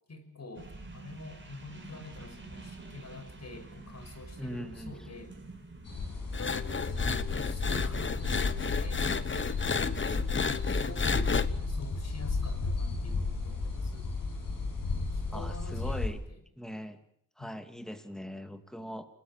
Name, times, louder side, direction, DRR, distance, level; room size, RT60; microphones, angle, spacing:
voice 1, 0.1-5.3 6.4-9.0 9.6-10.0 10.7-11.4 11.7-14.0 15.1-16.0 16.3-16.4 17.4-17.5, left 2 dB, 50° left, 8 dB, 5.8 m, -46 dB
sound 1, 0.5-8.8, right 3 dB, 35° right, 6.7 m, -49 dB
voice 2, 4.4-4.9 15.3-16.2 16.6-17.0 17.4-19.1, equal, ahead, 8 dB, 2.6 m, -40 dB
sound 2, 5.8-16.1, left 3 dB, 90° left, 7.5 m, -33 dB
sound 3, 6.3-11.5, left 5 dB, 35° left, 1.1 m, -32 dB
29.0 x 19.0 x 7.5 m, 0.70 s
cardioid pair, 80°, 33 cm